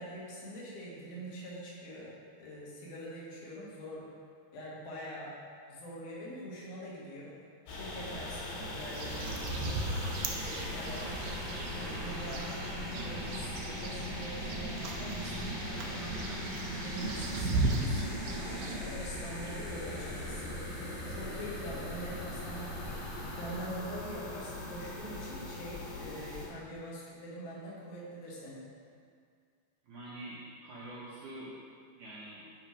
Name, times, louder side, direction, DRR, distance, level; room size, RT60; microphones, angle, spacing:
voice 1, 0.0-4.1 4.5-5.3 5.7-7.4 7.7-9.8 10.3-11.2 11.7-16.5 16.8-20.6 21.1-22.8 23.4-28.7, equal, 70° left, -6 dB, 3.3 m, -44 dB
sound 1, 7.7-26.5, left 1 dB, 90° left, 3.9 m, -41 dB
sound 2, 8.8-18.7, right 3 dB, 85° right, 1.8 m, -37 dB
sound 3, 9.1-23.6, left 1 dB, 50° right, 1.4 m, -44 dB
voice 2, 29.8-31.5 32.0-32.4, right 1 dB, 65° right, -8 dB, 2.0 m, -45 dB
10.5 x 4.4 x 5.0 m, 2.2 s
omnidirectional pair, 4.6 m